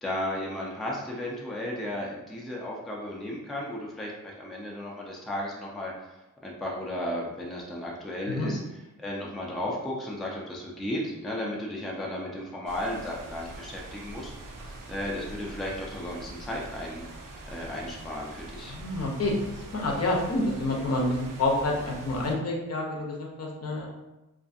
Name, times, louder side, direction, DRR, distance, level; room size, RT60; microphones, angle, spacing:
voice 1, 0.0-8.6 9.0-14.3 14.7-17.0 17.5-18.8, left 1 dB, ahead, -3 dB, 0.4 m, -34 dB
sound 1, 12.7-22.3, right 2 dB, 75° right, 0.5 m, -44 dB
voice 2, 18.7-23.9, left 2 dB, 50° left, -2 dB, 0.6 m, -28 dB
2.5 x 2.3 x 2.5 m, 0.96 s
wide cardioid pair, 105°, 32 cm